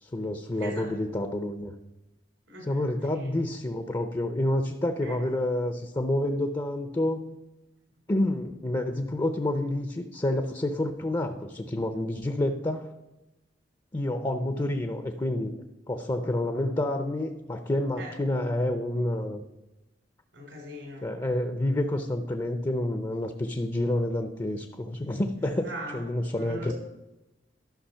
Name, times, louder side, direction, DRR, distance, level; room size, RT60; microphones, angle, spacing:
voice 1, 0.0-1.7 2.6-7.4 8.1-12.9 13.9-15.5 15.9-19.4 21.0-25.7 25.9-26.7, left 1 dB, 20° left, 6 dB, 0.6 m, -28 dB
voice 2, 0.6-0.9 2.5-2.8 3.1-3.3 5.0-5.2 18.0-18.1 20.3-21.1 25.4-26.0 26.3-26.7, equal, 85° right, 1 dB, 3.7 m, -40 dB
11.5 x 6.1 x 5.6 m, 1.0 s
head